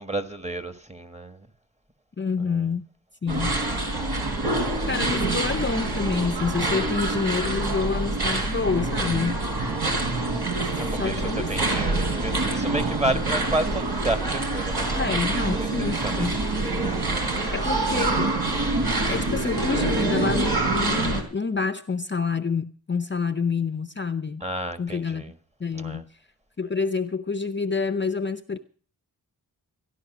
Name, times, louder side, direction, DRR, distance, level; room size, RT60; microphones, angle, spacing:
voice 1, 0.0-1.5 2.4-2.7 9.7-10.1 10.8-15.7 16.0-16.3 24.4-25.3 25.7-26.0, right 1 dB, 15° right, 1.4 m, -31 dB
voice 2, 2.2-2.9 3.2-3.6 4.9-9.4 9.9-10.1 11.0-11.5 15.0-16.3 17.5-18.3 19.0-24.4 24.8-25.2 25.6-26.1 26.6-28.6, left 5 dB, 30° left, 0.6 m, -27 dB
sound 1, 3.3-21.2, right 2 dB, 75° right, 3.4 m, -26 dB
14.0 x 11.0 x 6.0 m
wide cardioid pair, 70°, 39 cm